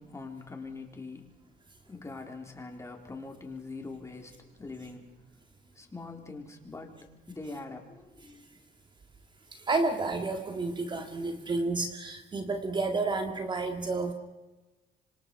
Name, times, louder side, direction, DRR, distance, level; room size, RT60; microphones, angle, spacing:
voice 1, 0.0-1.6 1.9-5.1 5.6-8.4, left 3 dB, 15° left, 2 dB, 4.0 m, -43 dB
voice 2, 9.5-14.1, right 3 dB, 25° right, 5 dB, 2.1 m, -30 dB
26.0 x 25.5 x 4.8 m, 1.2 s
cardioid pair, 110°, 17 cm